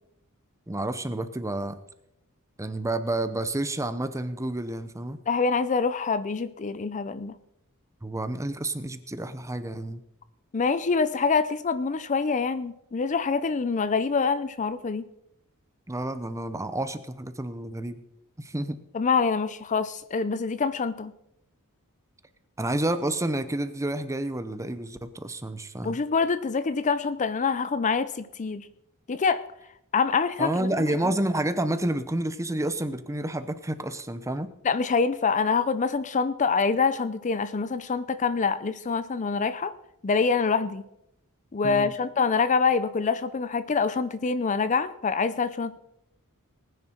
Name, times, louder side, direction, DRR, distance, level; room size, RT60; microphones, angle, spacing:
voice 1, 0.7-1.8 2.6-5.2 8.0-10.0 15.9-18.0 18.4-18.8 22.6-26.0 30.4-34.5 41.6-41.9, right 1 dB, 15° right, 11 dB, 0.8 m, -29 dB
voice 2, 5.3-7.3 10.5-15.1 18.9-21.1 25.8-28.7 29.1-29.4 29.9-30.7 34.6-39.7 40.0-40.8 41.5-45.8, left 5 dB, 35° left, 14 dB, 0.5 m, -25 dB
19.5 x 10.0 x 4.5 m, 0.82 s
head